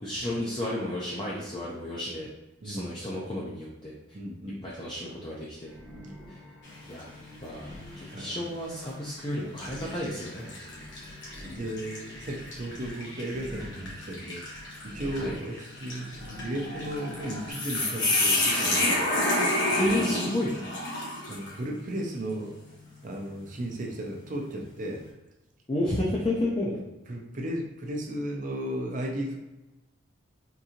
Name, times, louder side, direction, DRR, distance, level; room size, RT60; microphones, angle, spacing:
voice 1, 0.0-2.3 2.6-3.9 4.6-5.7 6.3-6.4 6.9-7.1 7.4-7.7 8.0-10.8 15.2-15.4 19.8-20.5 25.7-26.8, left 1 dB, 25° left, -6 dB, 0.5 m, -31 dB
voice 2, 2.6-3.0 4.1-4.6 8.1-8.5 10.8-10.9 11.4-19.1 19.7-20.1 21.3-22.5 23.0-25.0 27.1-29.4, right 1 dB, 40° right, 1 dB, 0.5 m, -35 dB
sound 1, 5.6-17.5, left 1 dB, 5° left, 0.9 m, -46 dB
sound 2, 6.6-7.1 7.6-7.8 8.7-9.0 9.6-21.6, left 1 dB, 70° left, 1.1 m, -30 dB
3.7 x 2.6 x 2.8 m, 1.0 s
head